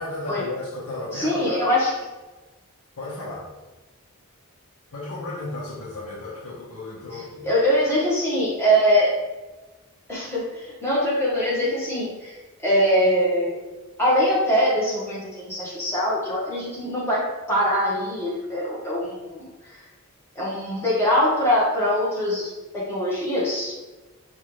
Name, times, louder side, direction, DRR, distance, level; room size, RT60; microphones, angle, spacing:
voice 1, 0.0-1.6 3.0-3.5 4.9-7.5, left 2 dB, 80° left, -6 dB, 0.8 m, -34 dB
voice 2, 1.1-1.9 7.4-9.1 10.1-12.3 12.6-13.5 14.0-19.4 19.7-19.8 20.3-23.7, equal, 10° left, -7 dB, 1.3 m, -23 dB
5.4 x 2.5 x 3.1 m, 1.2 s
head